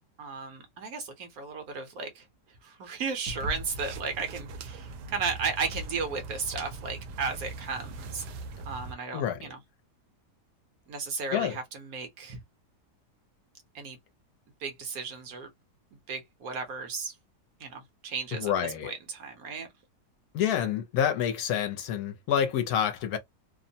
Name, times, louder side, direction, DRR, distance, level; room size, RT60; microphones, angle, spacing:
voice 1, 0.2-2.2 2.6-8.2 8.7-9.6 10.9-12.4 13.7-14.0 14.6-15.5 16.1-17.1 17.6-18.5 18.8-19.7, right 5 dB, 65° right, 1.1 m, -35 dB
sound 1, 3.3-8.9, right 2 dB, 85° right, 1.2 m, -40 dB
voice 2, 18.3-18.9 20.3-23.2, left 9 dB, 75° left, 1.0 m, -28 dB
2.9 x 2.1 x 2.6 m
omnidirectional pair, 1.7 m